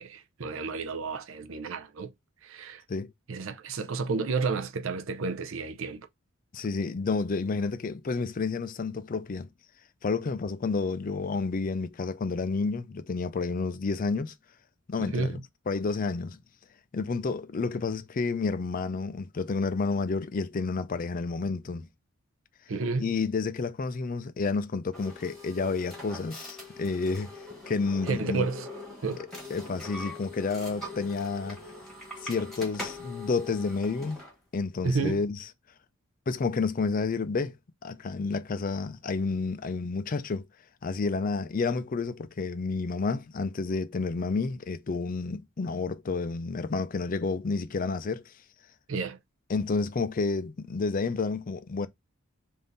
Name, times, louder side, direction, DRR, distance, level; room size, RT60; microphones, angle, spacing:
voice 1, 0.0-2.1 2.4-2.8 3.3-6.0 15.1-15.4 22.7-23.1 28.1-28.7 29.0-29.2 34.8-35.2 48.9-49.2, right 4 dB, 60° right, 0.6 m, -31 dB
voice 2, 6.5-9.5 10.0-14.3 14.9-16.4 16.9-21.9 23.0-27.3 27.7-28.5 29.2-31.6 32.2-34.2 34.5-35.4 36.3-37.5 37.8-40.5 40.8-48.3 49.5-51.9, left 4 dB, 40° left, 0.4 m, -30 dB
sound 1, 24.9-34.3, left 2 dB, ahead, 1.2 m, -42 dB
3.6 x 2.6 x 3.9 m
head